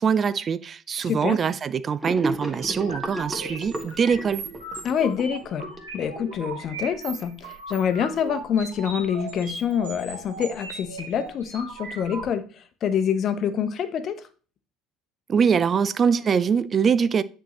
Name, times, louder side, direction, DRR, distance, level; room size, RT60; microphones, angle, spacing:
voice 1, 0.0-4.4 15.3-17.2, right 6 dB, 35° right, 0.4 m, -23 dB
voice 2, 1.0-1.4 4.8-12.4 12.8-14.2, left 8 dB, 45° left, 0.9 m, -26 dB
Gurgling / Sink (filling or washing), 2.0-6.5, right 1 dB, 10° right, 1.5 m, -34 dB
sound 1, 2.6-12.2, right 3 dB, 85° right, 2.3 m, -38 dB
9.0 x 4.5 x 3.1 m
figure-of-eight pair, 60°, 0 cm